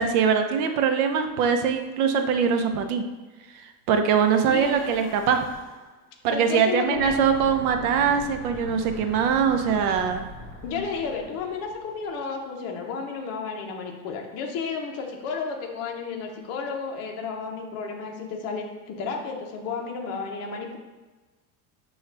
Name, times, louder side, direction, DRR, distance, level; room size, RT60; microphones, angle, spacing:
voice 1, 0.0-3.0 3.9-5.4 6.2-10.2, right 6 dB, 70° right, 6 dB, 0.6 m, -22 dB
Breathing / Wind, 4.0-5.9 6.8-12.2, equal, 55° right, 1.4 m, -42 dB
voice 2, 4.5-4.8 6.3-7.1 10.6-20.8, left 5 dB, 35° left, 1 dB, 0.6 m, -32 dB
6.2 x 2.4 x 3.2 m, 1.2 s
supercardioid pair, 155°, 45 cm